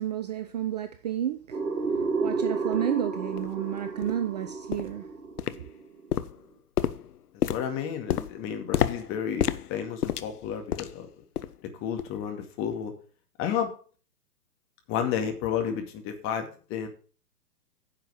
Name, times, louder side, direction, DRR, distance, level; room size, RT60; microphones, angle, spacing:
voice 1, 0.0-1.6 1.9-5.1, right 11 dB, 25° right, 0.5 m, -31 dB
sound 1, 1.5-6.2, right 4 dB, 70° right, 2.4 m, -31 dB
sound 2, 2.7-2.8 3.4-3.5 4.0-4.2 4.7-5.0 5.4-5.8 6.1-11.1 11.4-11.6 12.0-12.2 12.7-12.8, left 9 dB, 65° left, 0.9 m, -30 dB
voice 2, 7.5-11.1 11.8-12.9 13.4-13.7 14.9-16.9, left 8 dB, 25° left, 2.2 m, -31 dB
10.0 x 6.4 x 6.8 m
figure-of-eight pair, 125°, 48 cm